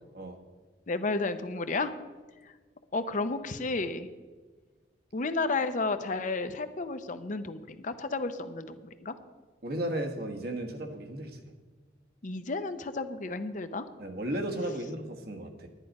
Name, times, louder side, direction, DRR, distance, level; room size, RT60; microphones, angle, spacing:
voice 1, 0.9-1.9 2.9-4.1 5.1-9.2 12.2-13.8, left 3 dB, 45° left, 10 dB, 0.7 m, -32 dB
voice 2, 9.6-11.5 14.0-15.7, right 1 dB, 60° right, 3 dB, 1.4 m, -35 dB
11.5 x 10.0 x 5.3 m, 1.4 s
head